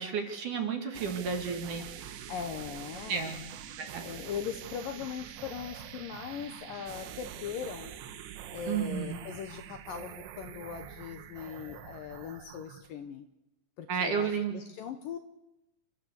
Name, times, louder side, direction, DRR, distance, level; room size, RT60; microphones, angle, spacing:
voice 1, 0.0-2.2 3.1-3.4 3.8-4.0 8.7-9.2 13.9-14.6, right 6 dB, 55° right, 5 dB, 3.1 m, -32 dB
sound 1, 0.9-12.9, right 9 dB, 90° right, 3.6 m, -45 dB
voice 2, 2.3-3.3 4.0-7.9 8.5-13.3 13.8-15.2, left 8 dB, 70° left, 7 dB, 2.3 m, -40 dB
30.0 x 13.5 x 8.2 m, 0.92 s
omnidirectional pair, 4.9 m